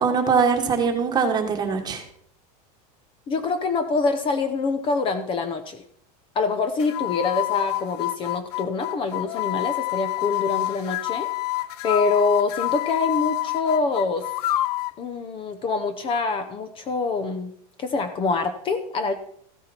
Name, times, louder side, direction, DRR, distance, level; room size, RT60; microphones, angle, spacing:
voice 1, 0.0-2.0, right 5 dB, 20° right, 4 dB, 1.7 m, -22 dB
voice 2, 3.3-5.8 6.3-11.3 11.8-14.3 15.0-17.5 17.8-19.1, left 4 dB, 25° left, 9 dB, 0.8 m, -25 dB
sound 1, 6.8-15.0, left 17 dB, 90° left, 0.6 m, -28 dB
14.5 x 9.2 x 4.4 m, 0.67 s
supercardioid pair, 155°, 19 cm